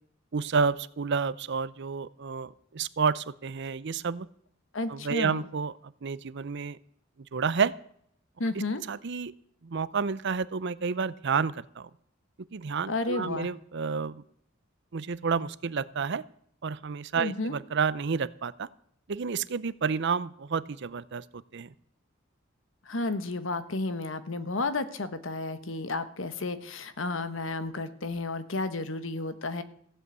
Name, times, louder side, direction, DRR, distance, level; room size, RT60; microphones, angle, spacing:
voice 1, 0.3-4.3 4.9-5.7 6.0-6.8 7.3-7.7 8.9-9.3 9.6-11.9 12.5-14.2 14.9-16.2 16.6-18.7 19.1-21.7, right 5 dB, 60° right, 18 dB, 0.6 m, -30 dB
voice 2, 4.7-5.5 8.4-8.8 12.9-13.5 17.2-17.6 22.8-29.6, left 2 dB, 70° left, 11 dB, 1.3 m, -32 dB
15.5 x 7.8 x 8.1 m, 0.66 s
head